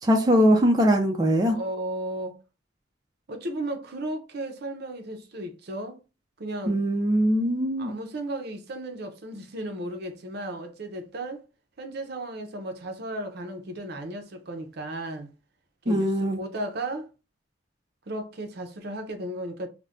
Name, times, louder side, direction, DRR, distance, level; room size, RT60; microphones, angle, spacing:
voice 1, 0.0-1.6 6.7-7.9 15.9-16.4, equal, 20° right, 0.4 m, -21 dB
voice 2, 1.5-2.4 3.3-6.0 6.4-6.8 7.8-11.4 11.8-15.3 15.8-17.1 18.1-19.7, right 1 dB, 60° right, 0.6 m, -35 dB
2.5 x 2.1 x 3.4 m
head